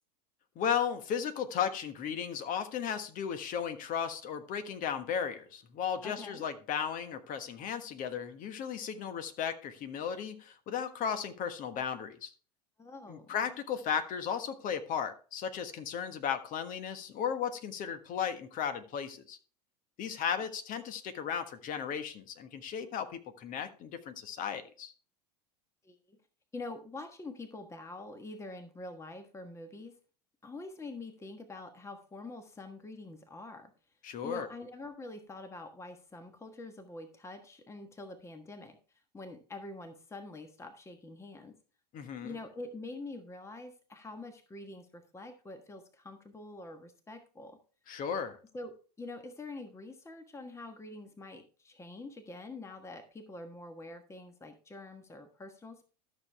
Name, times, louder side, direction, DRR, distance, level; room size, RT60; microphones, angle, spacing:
voice 1, 0.5-12.3 13.1-19.4 20.0-24.9 34.0-34.5 41.9-42.4 47.9-48.4, left 7 dB, 40° left, 9 dB, 1.5 m, -35 dB
voice 2, 6.0-6.4 12.8-13.4 25.8-26.2 26.5-29.9 30.4-33.7 34.2-38.8 39.1-41.6 42.2-47.6 48.5-48.7 49.0-55.8, left 2 dB, 15° left, 7 dB, 1.3 m, -45 dB
13.0 x 6.6 x 3.4 m, 0.38 s
hypercardioid pair, 85°, 21 cm